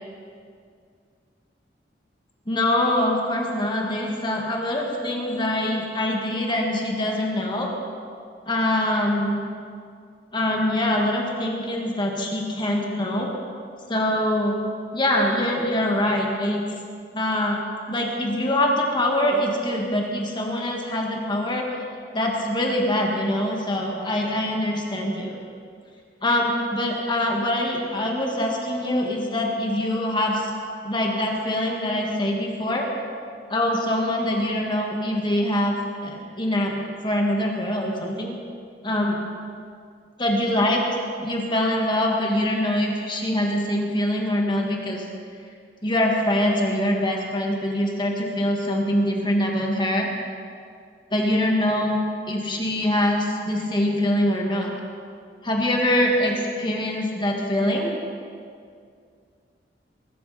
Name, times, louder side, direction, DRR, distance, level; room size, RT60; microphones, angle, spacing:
voice 1, 2.5-7.7 8.5-9.4 10.3-13.3 13.9-14.6 14.9-16.6 17.1-17.6 17.9-21.7 22.1-25.4 26.2-30.5 30.8-32.9 33.5-35.8 36.0-38.3 38.8-39.2 40.2-45.0 45.8-50.1 51.1-52.0 52.3-54.7 55.4-57.9, left 1 dB, 25° left, 0 dB, 1.9 m, -24 dB
23.0 x 13.0 x 4.3 m, 2.3 s
head